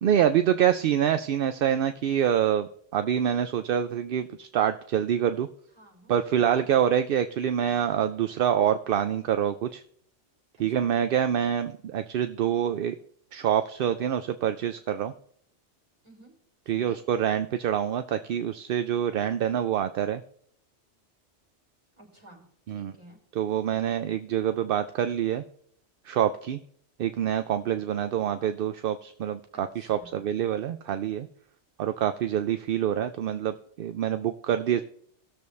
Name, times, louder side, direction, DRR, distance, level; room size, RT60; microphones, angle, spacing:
voice 1, 0.0-5.5 6.1-9.8 10.6-13.0 13.3-15.1 16.7-20.2 22.7-22.9 23.3-25.4 26.0-26.6 27.0-31.3 31.8-34.8, right 9 dB, 60° right, 9 dB, 0.6 m, -26 dB
voice 2, 5.8-6.1 6.5-6.8 10.6-10.9 16.0-16.3 16.7-17.0 22.0-23.2 29.5-30.2 34.7-34.8, right 1 dB, 25° right, -3 dB, 4.0 m, -53 dB
18.5 x 6.8 x 3.2 m, 0.63 s
omnidirectional pair, 1.2 m